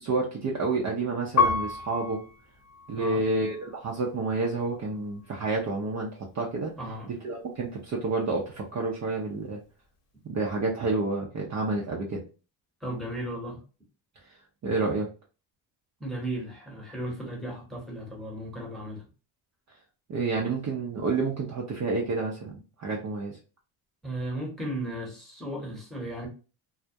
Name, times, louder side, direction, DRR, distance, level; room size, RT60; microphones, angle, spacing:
voice 1, 0.0-2.2 2.9-6.7 7.2-9.6 10.2-12.2 14.6-15.1 20.1-23.4, right 3 dB, 35° right, 0.5 m, -29 dB
Piano, 1.4-4.1 4.7-5.5, left 4 dB, 30° left, 0.7 m, -30 dB
voice 2, 6.8-7.1 12.8-13.6 16.0-19.0 24.0-26.3, right 1 dB, ahead, 0.9 m, -35 dB
2.3 x 2.0 x 2.6 m
supercardioid pair, 90°, 50 cm